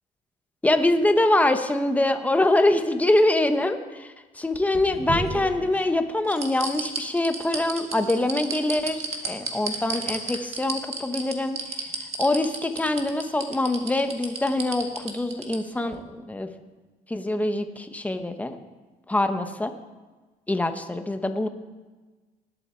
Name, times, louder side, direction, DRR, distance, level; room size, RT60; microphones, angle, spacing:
voice 1, 0.6-11.6 12.2-16.5 17.1-18.6 19.1-19.7 20.5-21.5, left 1 dB, 10° left, 8 dB, 0.9 m, -24 dB
sound 1, 4.5-5.9 6.3-15.6 15.9-16.0, right 4 dB, 40° right, 1.9 m, -32 dB
19.0 x 8.1 x 4.5 m, 1.3 s
cardioid pair, 110°, 17 cm